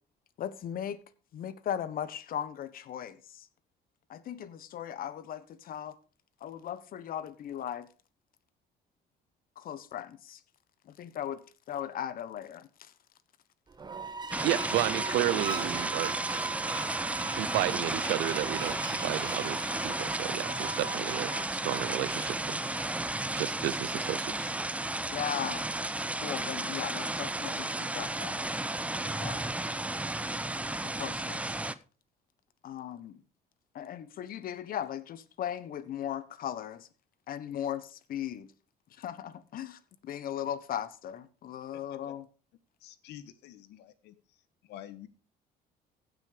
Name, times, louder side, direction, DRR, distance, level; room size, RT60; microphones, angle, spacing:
voice 1, 0.4-1.0 1.3-3.5 4.1-5.9 6.4-7.9 9.6-10.4 10.9-11.4 11.7-12.7 25.1-25.7 26.1-28.4 29.0-29.4 30.8-31.6 32.6-33.2 33.7-36.9 37.3-38.5 39.0-42.3, left 10 dB, 60° left, 1.3 m, -37 dB
sound 1, 13.7-23.1, right 5 dB, 25° right, 1.2 m, -40 dB
sound 2, 14.3-31.7, right 2 dB, 10° right, 0.7 m, -33 dB
voice 2, 14.4-16.1 17.2-24.6, right 15 dB, 90° right, 0.7 m, -33 dB
voice 3, 42.8-44.1 44.6-45.1, left 12 dB, 85° left, 1.4 m, -48 dB
16.0 x 6.3 x 5.1 m
cardioid pair, 110°, 17 cm